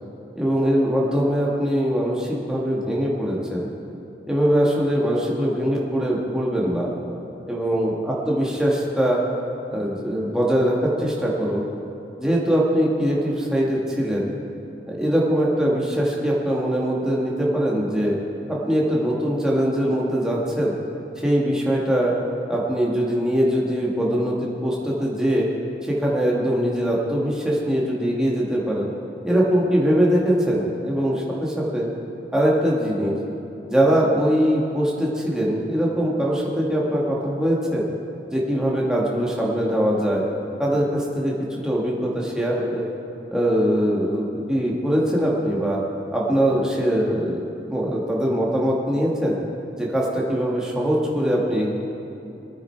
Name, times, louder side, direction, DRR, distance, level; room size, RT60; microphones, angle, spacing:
voice 1, 0.4-3.7 4.3-6.9 7.5-9.2 9.7-11.6 12.2-14.3 14.9-18.2 18.5-20.7 21.2-22.1 22.5-25.5 25.8-28.9 29.2-31.9 32.3-33.2 33.7-37.8 38.3-40.2 40.6-42.8 43.3-45.8 46.1-47.4 47.7-49.4 49.8-51.7, equal, 5° right, -4 dB, 1.9 m, -22 dB
23.0 x 9.4 x 4.7 m, 2.9 s
head